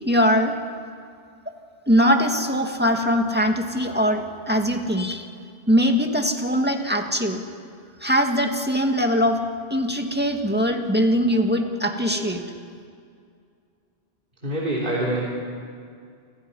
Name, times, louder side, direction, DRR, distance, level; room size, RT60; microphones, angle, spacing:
voice 1, 0.0-0.6 1.5-1.6 1.9-5.3 5.7-7.4 8.0-9.4 9.7-12.4, equal, 10° right, 3 dB, 2.1 m, -21 dB
voice 2, 11.2-11.8 12.1-12.3 14.4-15.2, right 1 dB, 45° right, -4 dB, 3.9 m, -27 dB
30.0 x 26.5 x 5.6 m, 2.3 s
omnidirectional pair, 1.2 m